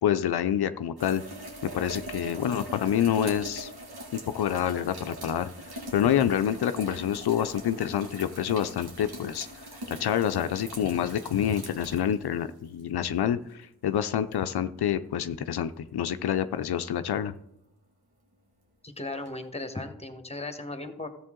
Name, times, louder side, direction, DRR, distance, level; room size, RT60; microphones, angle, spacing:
voice 1, 0.0-1.2 1.7-3.7 4.3-5.5 5.9-9.5 9.9-17.3, left 9 dB, 90° left, 11 dB, 0.5 m, -27 dB
sound 1, 1.0-12.8 14.3-14.4 19.3-19.4, right 1 dB, 80° right, 2.1 m, -42 dB
voice 2, 18.8-21.1, left 2 dB, 15° left, 7 dB, 1.4 m, -36 dB
13.5 x 7.1 x 3.7 m, 0.77 s
cardioid pair, 45°, 38 cm